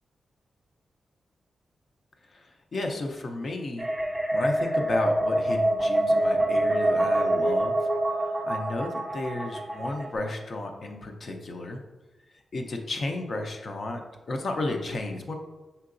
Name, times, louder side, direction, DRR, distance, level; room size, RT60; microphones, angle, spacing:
voice 1, 2.3-3.9 4.3-11.8 12.5-14.0 14.3-15.3, left 2 dB, 45° left, 3 dB, 0.5 m, -33 dB
sound 1, 3.8-10.2, right 1 dB, 10° right, 0.5 m, -25 dB
5.5 x 3.8 x 2.5 m, 1.1 s
wide cardioid pair, 150°, 0 cm